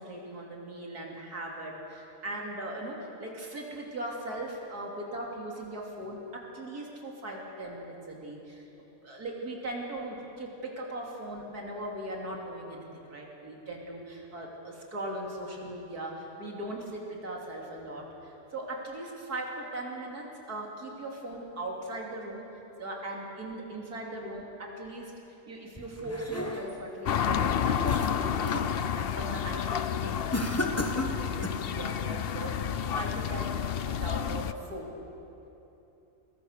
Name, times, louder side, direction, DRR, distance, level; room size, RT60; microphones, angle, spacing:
voice 1, 0.0-8.6 9.0-22.5 22.8-25.1 25.5-34.9, right 1 dB, 80° right, -2 dB, 3.6 m, -39 dB
sound 1, 25.8-26.9 27.4-28.7 29.1-29.5 30.3-31.7, left 1 dB, 10° left, 1.2 m, -34 dB
sound 2, 27.1-34.5, left 8 dB, 55° left, 0.7 m, -30 dB
23.5 x 21.5 x 6.7 m, 3.0 s
omnidirectional pair, 1.6 m